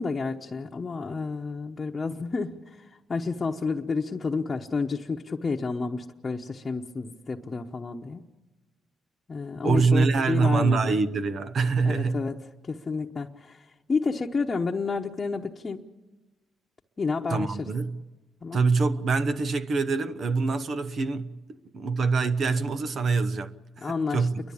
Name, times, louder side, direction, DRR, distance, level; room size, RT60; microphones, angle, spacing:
voice 1, 0.0-8.3 9.3-10.9 11.8-12.4 12.7-15.9 17.0-17.7 18.4-18.6 23.8-24.3, left 4 dB, 30° left, 1.0 m, -30 dB
voice 2, 9.6-12.2 17.3-18.0 18.5-24.4, right 4 dB, 55° right, 0.9 m, -25 dB
30.0 x 12.0 x 8.5 m
cardioid pair, 90°, 0 cm